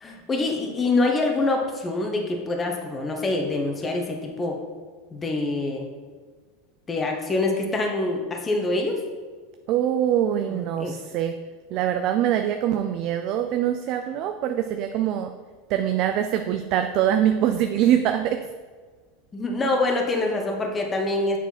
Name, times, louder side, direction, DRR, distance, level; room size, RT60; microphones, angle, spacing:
voice 1, 0.0-4.6 5.1-5.9 6.9-9.0 10.5-11.1 19.3-21.4, left 2 dB, 20° left, 2 dB, 1.1 m, -25 dB
voice 2, 9.7-11.3 11.7-15.3 15.7-18.4, right 10 dB, 50° right, 7 dB, 0.4 m, -23 dB
7.0 x 4.4 x 4.2 m, 1.5 s
supercardioid pair, 110°, 0 cm